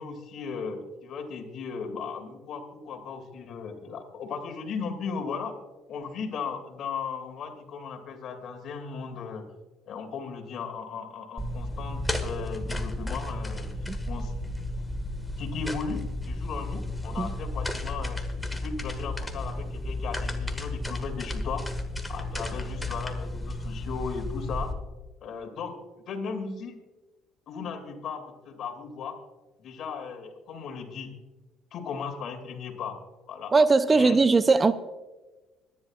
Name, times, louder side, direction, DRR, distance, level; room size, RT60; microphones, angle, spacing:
voice 1, 0.0-5.5 5.9-9.4 9.9-13.7 14.1-14.3 15.4-18.2 18.5-21.6 22.1-24.7 25.2-25.8 26.1-26.8 27.5-29.2 29.6-31.1 31.7-33.0 33.3-33.5 33.9-34.2, left 5 dB, 60° left, 2.3 m, -36 dB
sound 1, 11.4-24.7, left 1 dB, 10° left, 1.6 m, -33 dB
voice 2, 33.5-34.7, right 3 dB, 30° right, 0.5 m, -20 dB
25.0 x 10.5 x 2.4 m
supercardioid pair, 70°, 0 cm